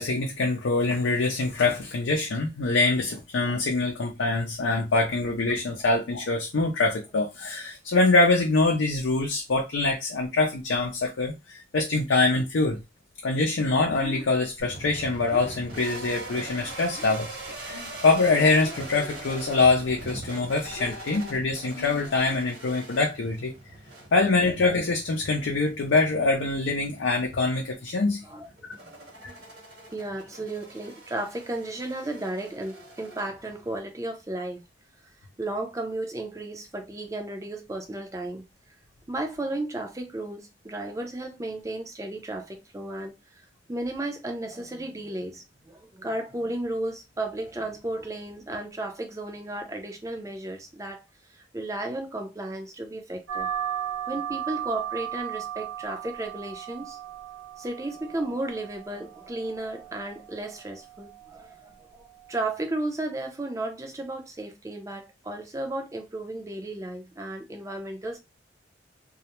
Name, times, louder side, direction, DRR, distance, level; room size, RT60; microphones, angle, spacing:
voice 1, 0.0-12.8 13.2-23.5 24.1-28.2, left 3 dB, 90° left, 0.5 m, -24 dB
Breathing, 14.0-17.3 17.7-18.1 18.4-19.4 19.8-22.3, left 2 dB, 35° left, 0.7 m, -44 dB
sound 1, 14.6-33.8, right 2 dB, 55° right, 1.0 m, -43 dB
voice 2, 28.2-29.3 29.9-34.6 35.4-38.4 39.1-43.4 43.7-51.0 51.3-53.5 54.1-57.0 57.6-68.2, right 2 dB, 15° right, 0.4 m, -34 dB
sound 2, 53.3-62.3, right 10 dB, 80° right, 0.8 m, -36 dB
2.3 x 2.0 x 2.9 m
head